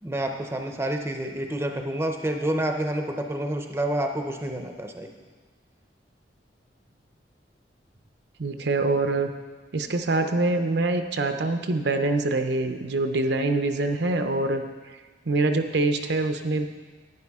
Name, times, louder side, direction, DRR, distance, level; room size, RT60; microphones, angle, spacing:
voice 1, 0.0-5.1, right 1 dB, 15° right, 4 dB, 0.6 m, -28 dB
voice 2, 8.4-9.3 9.7-14.6 15.3-16.7, right 2 dB, 65° right, 7 dB, 0.6 m, -24 dB
11.0 x 9.6 x 3.6 m, 1.4 s
head